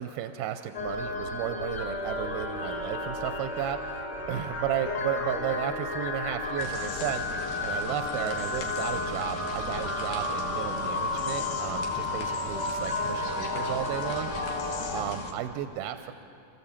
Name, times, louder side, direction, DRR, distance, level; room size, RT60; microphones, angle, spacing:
voice 1, 0.0-14.3 14.9-16.1, right 11 dB, 85° right, 8 dB, 2.5 m, -34 dB
sound 1, 0.7-15.0, left 2 dB, 40° left, 2.6 m, -32 dB
sound 2, 6.6-15.3, left 4 dB, 70° left, 3.1 m, -39 dB
28.5 x 14.0 x 7.2 m, 2.6 s
omnidirectional pair, 4.3 m